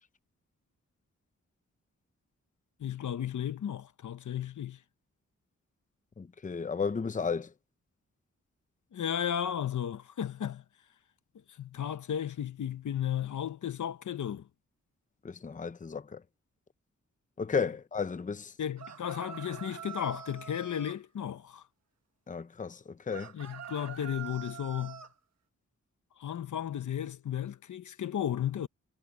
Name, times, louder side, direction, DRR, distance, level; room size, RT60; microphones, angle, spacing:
voice 1, 2.8-4.8 8.9-10.6 11.6-14.5 18.6-21.6 23.3-25.0 26.2-28.7, left 9 dB, 90° left, 1.1 m, -34 dB
voice 2, 6.2-7.5 15.2-16.2 17.4-18.5 22.3-23.3, left 5 dB, 25° left, 0.7 m, -33 dB
sound 1, 18.8-21.0 23.1-25.1, right 8 dB, 65° right, 1.7 m, -45 dB
wide cardioid pair, 130°, 29 cm